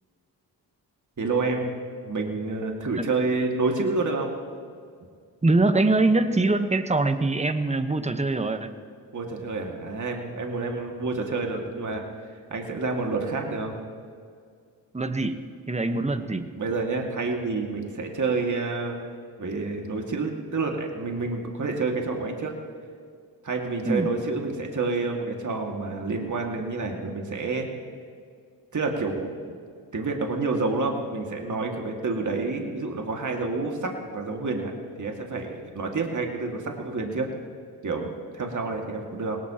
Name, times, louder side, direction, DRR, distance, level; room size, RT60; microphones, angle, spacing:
voice 1, 1.2-1.7 2.0-4.3 9.1-12.0 12.5-13.8 16.5-19.0 19.4-22.5 23.4-27.7 28.7-29.2 29.9-34.7 35.0-37.3 37.8-39.4, right 3 dB, 45° right, 2 dB, 2.2 m, -28 dB
voice 2, 5.4-8.7 14.9-15.4 15.7-16.5 23.9-24.1, right 2 dB, 15° right, 9 dB, 1.1 m, -23 dB
19.0 x 18.0 x 3.0 m, 2.2 s
supercardioid pair, 50°, 42 cm